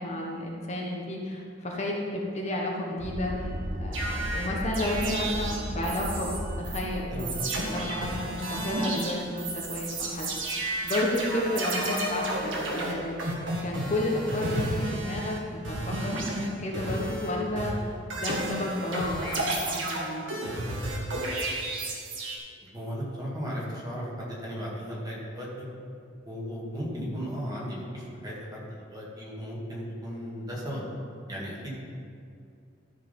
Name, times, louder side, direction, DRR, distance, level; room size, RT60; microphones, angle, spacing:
voice 1, 0.0-3.5 3.8-7.3 7.6-10.3 10.8-16.1 16.6-20.2, left 1 dB, 40° left, -2 dB, 1.1 m, -32 dB
sound 1, 3.0-14.8, equal, 70° right, 1.3 m, -38 dB
sound 2, 3.9-6.4 6.6-6.8 7.2-15.4 15.6-17.3 17.6-22.4, right 1 dB, 85° right, 1.7 m, -32 dB
voice 2, 7.1-7.5 22.7-25.7 26.2-30.8 31.3-31.7, equal, 20° right, -5 dB, 2.1 m, -36 dB
13.0 x 5.0 x 5.3 m, 2.4 s
head